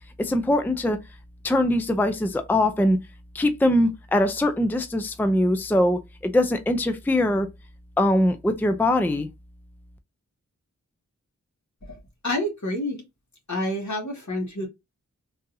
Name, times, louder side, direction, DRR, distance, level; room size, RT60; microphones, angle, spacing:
voice 1, 0.2-1.0 1.4-3.0 3.3-7.5 8.0-9.3, left 1 dB, 5° left, 0.4 m, -22 dB
voice 2, 11.9-13.0 13.5-14.7, left 1 dB, 65° left, 1.6 m, -29 dB
3.8 x 2.7 x 2.7 m
wide cardioid pair, 60°, 31 cm